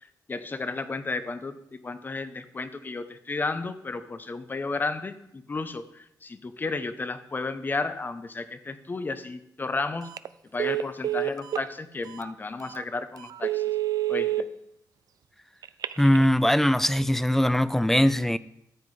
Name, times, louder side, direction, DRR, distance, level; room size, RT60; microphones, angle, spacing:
voice 1, 0.0-1.6 1.8-10.1 10.5-13.6 14.1-14.5, left 3 dB, 30° left, 12 dB, 0.8 m, -33 dB
Telephone, 10.0-10.3 10.6-11.7 12.2-12.3 12.7-12.8 13.3-14.4 15.6-16.2, right 13 dB, 65° right, 0.5 m, -28 dB
voice 2, 16.0-18.4, equal, 5° left, 17 dB, 0.4 m, -21 dB
13.5 x 7.7 x 4.9 m, 0.78 s
cardioid pair, 110°, 7 cm